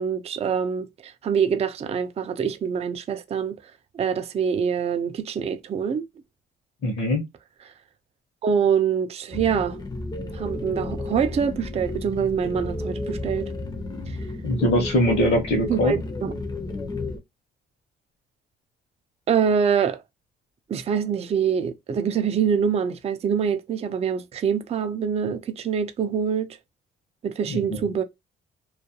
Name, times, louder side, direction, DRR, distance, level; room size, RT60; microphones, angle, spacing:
voice 1, 0.0-3.6 3.9-6.1 8.4-9.8 10.3-13.5 14.1-14.2 15.7-16.3 19.3-20.0 20.7-26.6 27.2-28.0, right 7 dB, 30° right, 0.4 m, -25 dB
voice 2, 6.8-7.2 14.4-16.0 27.5-27.8, left 1 dB, 55° left, 0.9 m, -22 dB
sound 1, 9.3-17.2, left 2 dB, 20° left, 0.5 m, -32 dB
2.4 x 2.2 x 2.7 m
cardioid pair, 90°, 20 cm